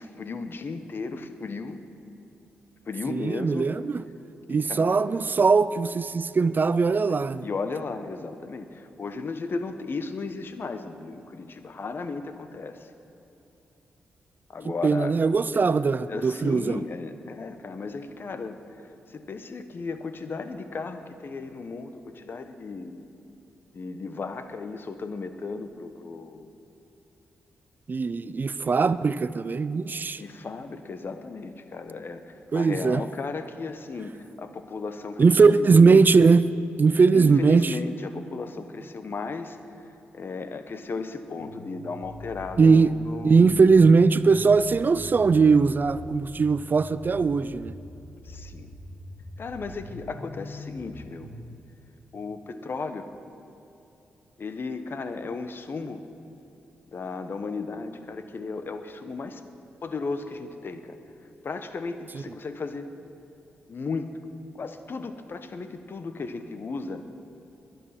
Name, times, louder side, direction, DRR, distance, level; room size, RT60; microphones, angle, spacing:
voice 1, 0.0-1.9 2.9-3.7 4.5-5.0 7.1-12.9 14.5-15.1 16.1-23.0 23.7-26.5 30.2-36.0 37.1-39.6 40.1-43.6 48.2-48.7 49.4-51.3 52.1-53.1 54.4-56.0 56.9-59.4 59.8-61.0 61.4-62.9 63.7-64.1 64.5-67.0, left 4 dB, 55° left, 9 dB, 1.1 m, -35 dB
voice 2, 3.1-4.0 4.5-7.5 14.6-16.8 27.9-30.2 32.5-33.0 35.2-36.4 36.8-37.8 42.6-42.9 43.2-47.7 62.1-62.2, right 4 dB, 45° right, 16 dB, 0.5 m, -20 dB
sound 1, 41.4-51.4, left 1 dB, 75° left, 2.1 m, -43 dB
22.0 x 8.4 x 5.9 m, 2.8 s
supercardioid pair, 45°, 5 cm